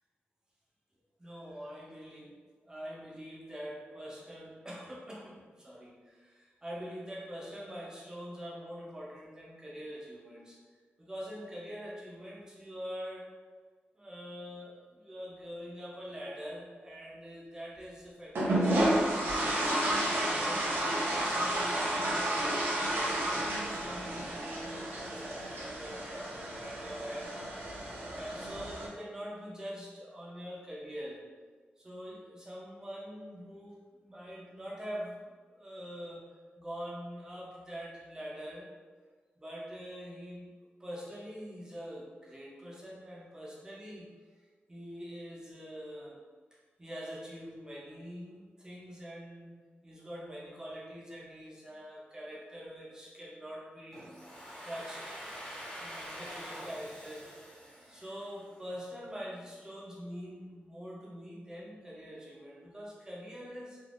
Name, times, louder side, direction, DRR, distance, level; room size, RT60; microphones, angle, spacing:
voice 1, 1.2-10.6 11.0-13.3 13.9-19.0 19.5-31.2 31.8-36.3 36.6-38.7 39.4-40.5 40.8-44.1 44.7-46.2 46.5-54.1 54.4-55.2 55.5-57.6 57.9-63.8, equal, 20° right, -5 dB, 0.6 m, -44 dB
sound 1, 18.3-28.9, right 1 dB, 90° right, 0.7 m, -31 dB
Domestic sounds home sounds, 53.9-58.7, equal, 20° left, 0.9 m, -45 dB
3.3 x 2.4 x 2.5 m, 1.4 s
wide cardioid pair, 135°, 4 cm